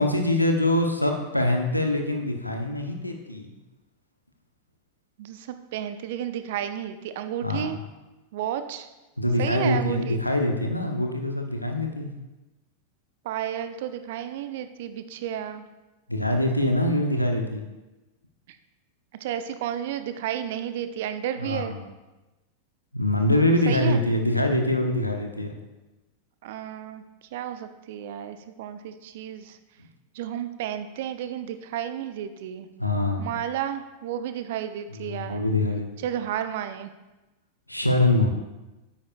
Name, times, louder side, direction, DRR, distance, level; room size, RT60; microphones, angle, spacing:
voice 1, 0.0-3.5 7.4-7.7 9.2-12.1 16.1-17.6 21.4-21.8 22.9-25.5 32.8-33.3 35.0-35.9 37.7-38.4, left 1 dB, 90° left, 3 dB, 0.9 m, -24 dB
voice 2, 5.2-7.8 8.3-8.9 9.4-10.2 13.2-15.7 19.2-21.7 23.7-24.0 26.4-27.0 27.3-29.6 30.1-32.7 33.2-35.5 36.0-36.9, right 10 dB, 55° right, 10 dB, 0.5 m, -32 dB
9.5 x 8.7 x 2.5 m, 1.1 s
figure-of-eight pair, 90°, 0 cm